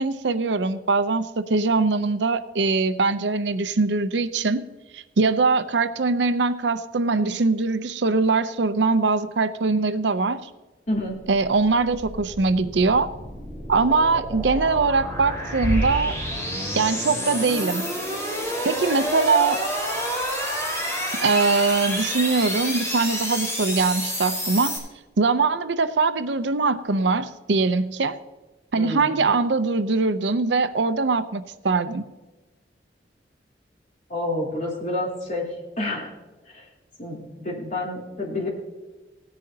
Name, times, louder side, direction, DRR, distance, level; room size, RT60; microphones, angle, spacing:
voice 1, 0.0-4.6 4.9-10.5 11.3-13.1 13.7-16.2 16.8-17.9 18.6-19.6 21.2-24.8 25.2-28.2 28.7-32.0, right 4 dB, 85° right, 12 dB, 0.7 m, -22 dB
sound 1, 11.2-24.8, equal, 15° left, 3.5 m, -29 dB
sound 2, 15.6-17.2, equal, 25° right, 4.3 m, -29 dB
voice 2, 28.8-29.2 34.1-35.5 35.8-36.1 36.5-36.6 37.0-38.5, left 1 dB, 45° left, -3 dB, 3.4 m, -28 dB
17.5 x 10.5 x 2.8 m, 1.2 s
head